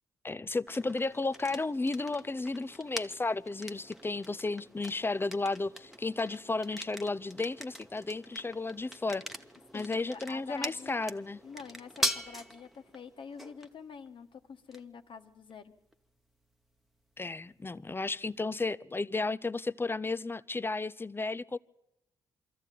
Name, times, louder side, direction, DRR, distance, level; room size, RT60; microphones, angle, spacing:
voice 1, 0.2-9.2 9.7-11.4 17.2-21.6, left 3 dB, 20° left, 0.7 m, -33 dB
sound 1, 0.7-18.4, equal, ahead, 1.3 m, -43 dB
voice 2, 9.7-11.0 11.4-15.7, left 6 dB, 55° left, 1.5 m, -47 dB
23.5 x 14.0 x 9.3 m
hypercardioid pair, 45°, 10 cm